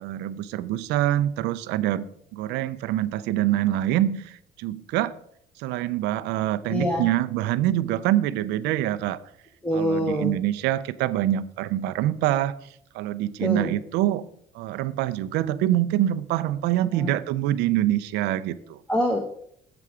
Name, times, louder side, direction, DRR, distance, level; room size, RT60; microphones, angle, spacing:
voice 1, 0.0-5.1 5.6-9.2 9.7-12.5 12.9-14.2 14.5-18.8, right 13 dB, 90° right, 13 dB, 0.5 m, -25 dB
voice 2, 6.7-7.1 9.6-10.3 13.4-13.7 16.9-17.1 18.9-19.2, equal, 5° left, 2 dB, 1.0 m, -25 dB
7.6 x 6.9 x 4.8 m, 0.69 s
cardioid pair, 110°, 17 cm